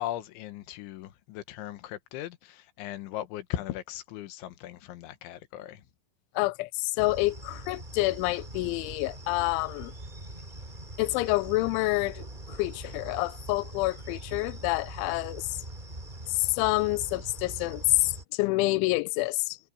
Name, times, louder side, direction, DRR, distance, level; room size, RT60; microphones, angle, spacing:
voice 1, 0.0-5.9, left 13 dB, 70° left, 3.4 m, -38 dB
voice 2, 6.4-9.9 11.0-15.5 16.4-19.6, left 22 dB, 90° left, 2.7 m, -28 dB
sound 1, 7.0-18.2, right 1 dB, 15° right, 1.7 m, -42 dB
omnidirectional pair, 6.0 m